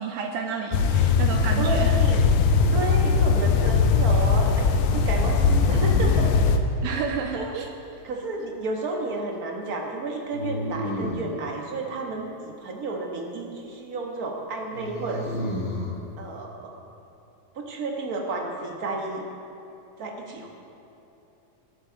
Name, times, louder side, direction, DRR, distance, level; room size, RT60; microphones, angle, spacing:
voice 1, 0.0-2.0 6.8-7.7, right 6 dB, 80° right, 3 dB, 1.9 m, -30 dB
sound 1, 0.7-6.6, left 5 dB, 75° left, 1.9 m, -20 dB
voice 2, 1.6-2.3 2.7-6.3 7.3-7.6 8.0-15.6 16.2-16.7 17.5-19.2 20.0-20.5, right 2 dB, 50° right, 1 dB, 1.2 m, -32 dB
sound 2, 3.1-3.5 5.6-6.6 10.3-11.4 14.7-16.0, left 1 dB, 45° left, 1.0 m, -32 dB
21.5 x 7.7 x 3.9 m, 3.0 s
omnidirectional pair, 3.3 m